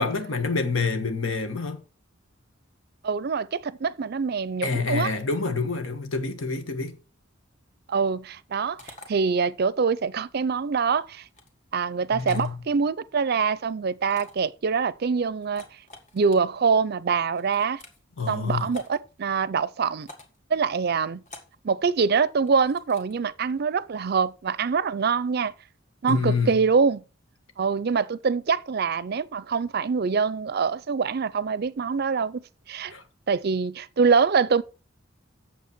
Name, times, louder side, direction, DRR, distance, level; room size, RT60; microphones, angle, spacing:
voice 1, 0.0-1.8 4.6-7.0 12.1-12.6 18.2-18.7 26.1-26.6 32.9-33.0, left 4 dB, 90° left, 1.5 m, -27 dB
voice 2, 3.0-5.1 7.9-11.3 11.7-15.6 16.1-17.8 18.3-20.1 20.5-21.2 21.6-25.5 26.0-27.0 27.6-32.4 32.7-32.9 33.3-34.6, right 5 dB, 50° right, 0.5 m, -24 dB
sound 1, 8.8-9.1 11.3-11.5 12.2-12.5 14.1-14.5 15.4-16.4 17.3-18.0 18.7-19.0 20.0-20.4 21.3-21.6 22.5-23.1, left 2 dB, 40° left, 1.9 m, -45 dB
8.4 x 7.1 x 4.5 m
head